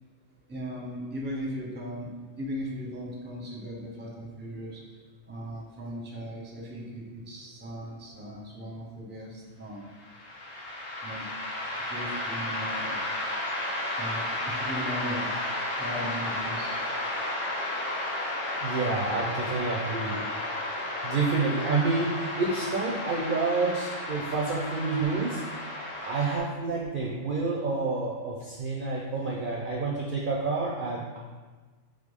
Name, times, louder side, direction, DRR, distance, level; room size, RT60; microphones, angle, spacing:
voice 1, 0.5-2.1 2.4-4.8 5.3-9.8 11.0-11.2 11.8-13.0 14.0-15.3 15.8-16.7 19.5-19.6, equal, 10° right, -2 dB, 0.5 m, -37 dB
sound 1, 10.0-26.4, left 1 dB, 85° left, 1.3 m, -33 dB
voice 2, 18.6-20.2 21.0-25.4 26.0-31.2, right 3 dB, 60° right, -3 dB, 0.6 m, -29 dB
3.8 x 3.3 x 3.5 m, 1.4 s
omnidirectional pair, 1.3 m